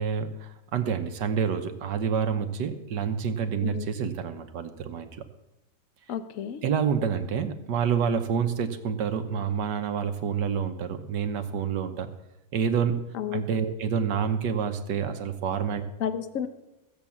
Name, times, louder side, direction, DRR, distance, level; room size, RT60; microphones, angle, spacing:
voice 1, 0.0-5.2 6.6-12.1 12.5-13.0 13.3-15.8, right 7 dB, 70° right, 8 dB, 1.6 m, -28 dB
voice 2, 6.1-6.6 13.1-13.4 16.0-16.5, left 9 dB, 55° left, 10 dB, 1.1 m, -31 dB
16.0 x 7.4 x 7.2 m, 0.97 s
omnidirectional pair, 2.0 m